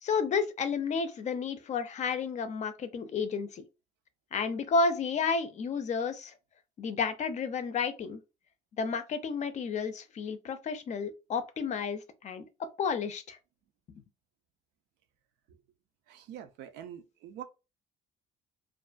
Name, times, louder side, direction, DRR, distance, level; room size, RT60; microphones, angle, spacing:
voice 1, 0.0-3.6 4.3-6.3 6.8-8.2 8.8-12.4 12.8-13.4, left 5 dB, 45° left, 0.5 m, -31 dB
voice 2, 16.1-17.4, right 10 dB, 90° right, 0.5 m, -45 dB
2.4 x 2.2 x 2.4 m
cardioid pair, 110°, 17 cm